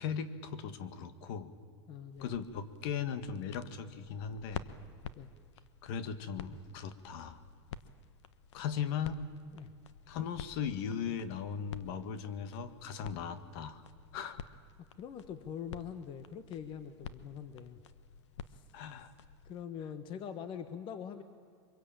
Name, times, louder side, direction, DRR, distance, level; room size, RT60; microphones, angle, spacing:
voice 1, 0.0-1.5 2.2-4.7 5.8-7.4 8.5-9.2 10.1-13.8 14.1-14.4 18.7-19.1, left 7 dB, 60° left, 11 dB, 1.8 m, -38 dB
voice 2, 1.9-2.3 5.1-5.3 8.7-8.8 9.5-9.7 15.0-17.8 18.5-18.6 19.4-21.2, left 8 dB, 35° left, 10 dB, 1.3 m, -43 dB
sound 1, 2.1-19.6, left 7 dB, 85° left, 1.2 m, -50 dB
24.0 x 22.5 x 8.9 m, 2.1 s
supercardioid pair, 140°, 15 cm